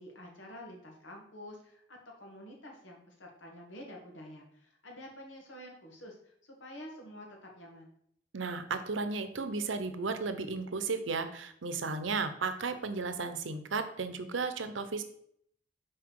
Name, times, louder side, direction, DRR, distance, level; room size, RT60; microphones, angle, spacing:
voice 1, 0.0-7.9, left 1 dB, 85° left, 0 dB, 1.8 m, -49 dB
voice 2, 8.3-15.0, right 4 dB, 85° right, 9 dB, 0.7 m, -34 dB
6.1 x 4.6 x 4.7 m, 0.68 s
head